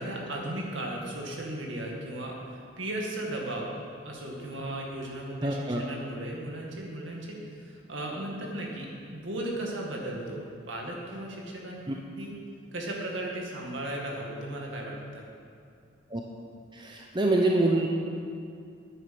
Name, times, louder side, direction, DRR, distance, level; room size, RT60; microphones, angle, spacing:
voice 1, 0.0-3.7 4.0-11.8 12.2-12.4 12.7-15.3, right 1 dB, 65° right, -1 dB, 2.1 m, -36 dB
voice 2, 5.4-5.8 11.9-12.0 16.1-16.2 16.8-17.9, right 2 dB, 25° right, 0 dB, 0.7 m, -25 dB
9.8 x 9.3 x 6.0 m, 2.3 s
head